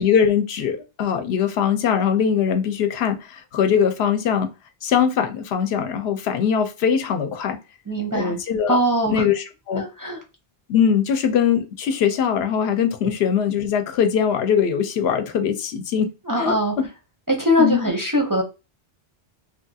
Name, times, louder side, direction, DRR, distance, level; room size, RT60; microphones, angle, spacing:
voice 1, 0.0-4.5 4.8-7.6 8.1-8.8 9.1-9.9 10.7-16.1 16.4-16.9 17.6-17.9, left 7 dB, 85° left, 0.8 m, -21 dB
voice 2, 7.9-8.4 8.7-9.2 9.7-10.2 16.2-16.7 17.3-18.4, equal, 25° right, 0.4 m, -21 dB
3.0 x 2.3 x 2.6 m
omnidirectional pair, 1.0 m